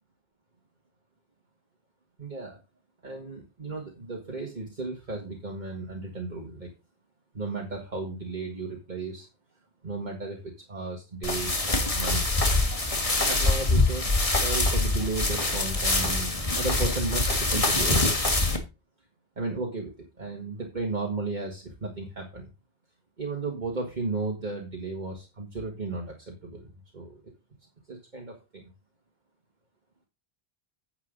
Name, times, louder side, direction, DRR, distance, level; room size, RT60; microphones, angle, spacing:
voice 1, 2.2-2.6 3.0-6.7 7.3-9.3 9.8-12.4 13.3-18.2 19.4-22.5 23.2-27.2 27.9-28.7, right 3 dB, 45° right, 0 dB, 1.9 m, -34 dB
sound 1, 11.2-18.6, left 2 dB, 35° left, 1.8 m, -24 dB
9.7 x 8.0 x 3.9 m, 0.27 s
omnidirectional pair, 1.1 m